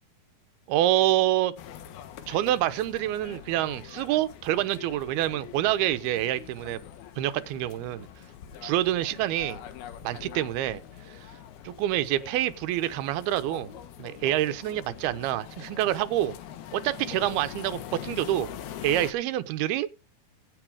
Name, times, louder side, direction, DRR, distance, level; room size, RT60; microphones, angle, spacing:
voice 1, 0.7-1.5 2.3-6.8 7.2-8.1 8.6-9.6 10.0-10.8 11.1-11.2 11.6-13.7 14.0-16.3 16.7-18.5 18.8-19.9, right 13 dB, 90° right, 2.8 m, -27 dB
sound 1, 1.6-19.1, left 10 dB, 80° left, 3.2 m, -43 dB
16.5 x 6.6 x 4.8 m
omnidirectional pair, 4.4 m